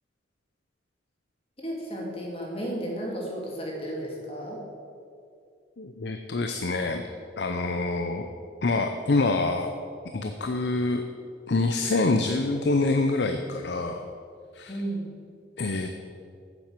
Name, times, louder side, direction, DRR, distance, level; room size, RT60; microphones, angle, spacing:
voice 1, 1.6-4.6 7.6-7.7 14.7-15.1, right 1 dB, 30° left, -2 dB, 2.4 m, -33 dB
voice 2, 5.8-7.0 7.4-8.3 8.6-9.7 10.1-11.0 11.5-14.1 14.5-14.7 15.6-15.9, left 3 dB, 65° left, 6 dB, 0.6 m, -26 dB
9.5 x 7.6 x 7.5 m, 2.4 s
head